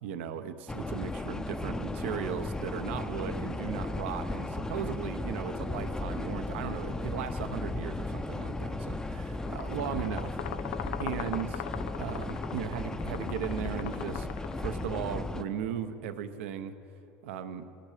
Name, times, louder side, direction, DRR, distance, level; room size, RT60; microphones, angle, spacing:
voice 1, 0.0-10.4 11.0-11.6 12.0-14.3 14.6-16.7 17.2-17.7, right 9 dB, 90° right, 9 dB, 0.7 m, -37 dB
sound 1, 0.7-15.4, left 2 dB, 10° left, 0.5 m, -35 dB
sound 2, 9.4-15.1, left 12 dB, 85° left, 0.4 m, -41 dB
17.5 x 10.5 x 4.9 m, 2.9 s
supercardioid pair, 110°, 6 cm